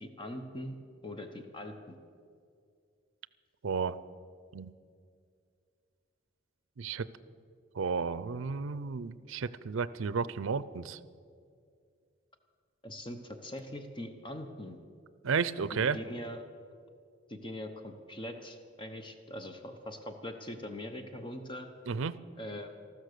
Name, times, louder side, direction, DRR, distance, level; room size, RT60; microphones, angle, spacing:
voice 1, 0.0-0.8 1.0-2.0 12.8-14.8 15.7-16.4 17.3-21.7 22.4-22.7, left 1 dB, 25° left, 6 dB, 0.8 m, -42 dB
voice 2, 3.6-4.0 4.5-4.7 6.8-7.1 7.8-11.0 15.2-16.0 21.9-22.1, right 5 dB, 75° right, 17 dB, 0.5 m, -32 dB
14.0 x 13.0 x 6.7 m, 2.3 s
head